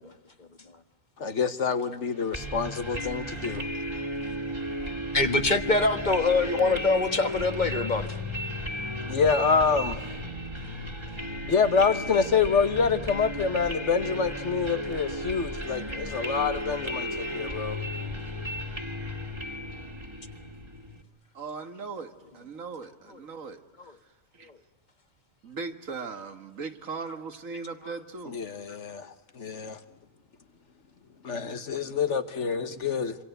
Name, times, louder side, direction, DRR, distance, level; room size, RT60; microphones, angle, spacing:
voice 1, 1.2-3.7 9.1-10.0 11.5-17.8 28.2-29.8 31.2-33.2, left 5 dB, 65° left, 1.6 m, -26 dB
sound 1, 2.3-21.0, equal, 20° right, 2.2 m, -34 dB
voice 2, 5.1-8.1 27.8-27.9, left 3 dB, 35° left, 1.6 m, -24 dB
voice 3, 21.3-23.6 24.3-24.5 25.4-28.4, right 4 dB, 85° right, 2.1 m, -38 dB
27.0 x 26.0 x 8.0 m
omnidirectional pair, 1.3 m